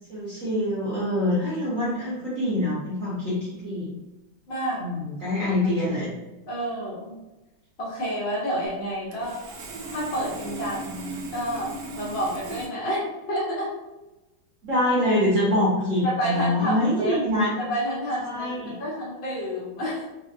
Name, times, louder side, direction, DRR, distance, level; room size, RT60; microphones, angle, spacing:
voice 1, 0.1-4.0 4.8-6.1 14.6-17.6 18.2-18.7, left 1 dB, 60° right, -8 dB, 0.8 m, -25 dB
voice 2, 4.5-4.8 6.5-7.1 7.8-9.4 9.9-13.7 16.0-17.2 17.6-20.1, equal, 75° left, -6 dB, 0.5 m, -29 dB
Sawing, 8.7-8.8 9.1-12.7, right 3 dB, 85° right, 0.9 m, -37 dB
3.3 x 2.1 x 2.6 m, 1.0 s
omnidirectional pair, 2.3 m